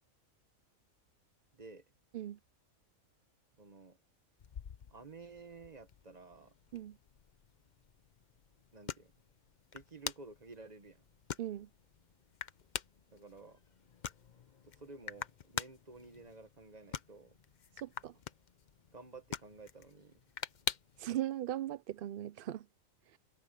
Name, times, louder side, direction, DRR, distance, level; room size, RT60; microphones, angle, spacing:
voice 1, 1.5-1.8 3.6-4.0 4.9-6.5 8.7-9.1 9.7-11.0 13.1-13.6 14.6-17.4 18.9-20.2, right 3 dB, 30° right, 1.7 m, -53 dB
sound 1, 4.4-21.1, left 7 dB, 45° left, 0.6 m, -46 dB
voice 2, 11.4-11.7 17.8-18.1 21.0-22.7, right 12 dB, 70° right, 0.5 m, -38 dB
omnidirectional pair, 1.5 m